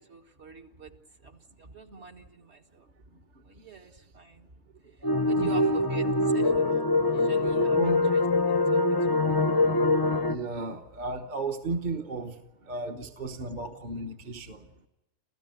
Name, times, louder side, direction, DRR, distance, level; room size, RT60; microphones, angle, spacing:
voice 1, 0.1-0.9 1.2-2.6 3.5-4.5 5.2-6.4 7.1-7.8 8.1-8.2 8.7-8.8, right 6 dB, 55° right, 3 dB, 1.9 m, -44 dB
sound 1, 5.0-10.4, left 2 dB, 25° left, 0.6 m, -24 dB
voice 2, 10.3-12.3 12.7-14.6, right 3 dB, 40° right, 4 dB, 1.2 m, -34 dB
29.0 x 14.0 x 9.2 m, 0.98 s
omnidirectional pair, 1.4 m